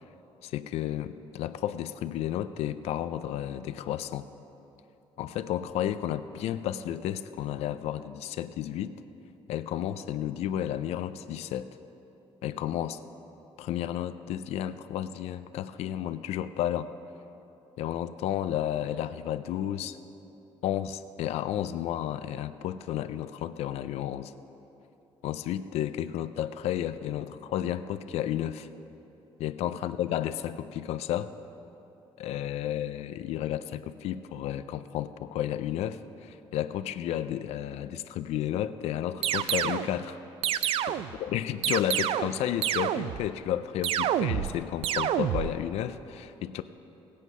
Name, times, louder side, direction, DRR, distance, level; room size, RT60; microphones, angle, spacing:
voice 1, 0.4-4.3 5.2-9.0 9.5-11.7 12.4-13.0 13.6-16.9 17.8-20.0 20.6-24.3 25.2-28.7 29.4-31.3 32.2-40.2 41.2-46.6, left 11 dB, 85° left, 12 dB, 0.4 m, -32 dB
sound 1, 39.2-39.9 40.4-41.2 41.6-42.4 42.6-43.3 43.8-44.5 44.8-45.5, right 11 dB, 65° right, 0.4 m, -28 dB
17.5 x 8.4 x 5.4 m, 2.9 s
cardioid pair, 170°, 11 cm